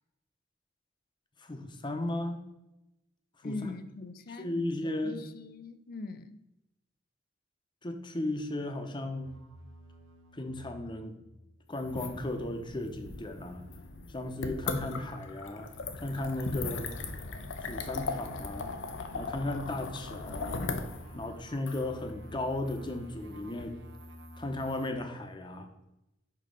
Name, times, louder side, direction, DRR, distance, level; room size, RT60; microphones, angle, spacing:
voice 1, 1.4-2.5 3.4-3.6 4.4-5.3 7.8-9.3 10.3-11.2 11.7-13.6 14.1-15.7 16.0-16.9 17.6-18.8 19.1-20.7 21.1-23.8 24.4-25.7, left 1 dB, 25° left, 5 dB, 0.8 m, -35 dB
voice 2, 3.4-6.5, left 3 dB, 50° left, 11 dB, 0.5 m, -42 dB
sound 1, 9.2-11.4 11.8-15.3 15.6-24.9, equal, 90° right, 1.0 m, -52 dB
sound 2, 11.8-23.6, left 3 dB, 90° left, 0.8 m, -39 dB
5.3 x 5.3 x 5.2 m, 0.91 s
head